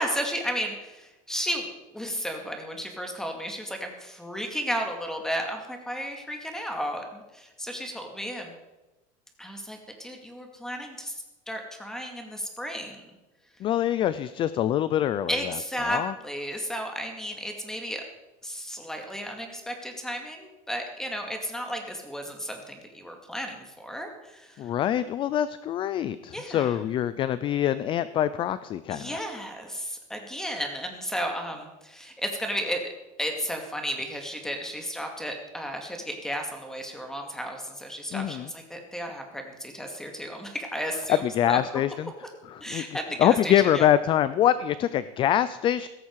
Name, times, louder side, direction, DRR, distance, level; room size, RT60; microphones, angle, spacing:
voice 1, 0.0-8.5 9.4-13.1 15.3-18.0 18.4-24.7 26.3-26.8 28.9-32.9 33.2-41.2 41.5-41.6 42.6-43.9, equal, 5° left, 3 dB, 2.2 m, -33 dB
voice 2, 13.6-15.5 15.8-16.1 24.6-29.2 38.1-38.5 41.1-42.1 42.5-42.8 43.2-45.9, left 11 dB, 30° left, 15 dB, 0.4 m, -24 dB
16.5 x 14.0 x 4.8 m, 1.1 s
supercardioid pair, 145°, 17 cm